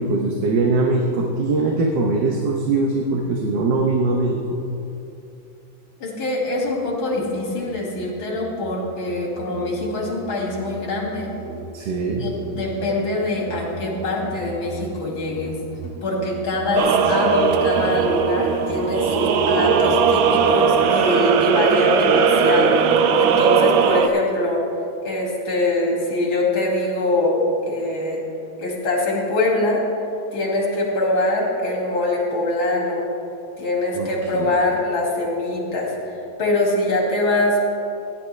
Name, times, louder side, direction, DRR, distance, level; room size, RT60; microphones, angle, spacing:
voice 1, 0.0-4.4 11.7-12.2 33.9-34.1 34.3-34.5, right 3 dB, 65° right, 1 dB, 1.5 m, -21 dB
voice 2, 6.0-11.3 12.1-15.6 16.0-24.6 25.0-28.2 28.6-29.8 30.3-33.0 33.6-36.1 36.4-37.6, left 2 dB, 80° left, -2 dB, 3.0 m, -23 dB
Musical instrument, 6.5-21.1, right 3 dB, 40° left, 3.7 m, -38 dB
sound 1, 16.8-24.1, right 7 dB, 85° right, 1.4 m, -18 dB
17.0 x 10.5 x 3.2 m, 2.8 s
omnidirectional pair, 2.2 m